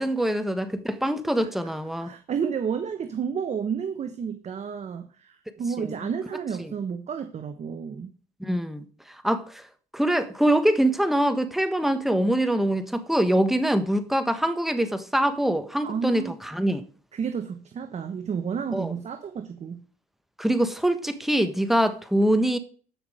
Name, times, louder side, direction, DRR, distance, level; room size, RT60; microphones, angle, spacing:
voice 1, 0.0-2.1 5.8-6.0 6.6-6.7 8.4-9.6 9.9-16.8 18.7-18.9 20.4-22.6, right 1 dB, ahead, 1.4 m, -24 dB
voice 2, 1.4-1.7 2.0-8.1 15.8-16.4 17.1-19.8, right 6 dB, 40° right, 1.1 m, -31 dB
14.0 x 6.0 x 5.0 m
cardioid pair, 110°, 17 cm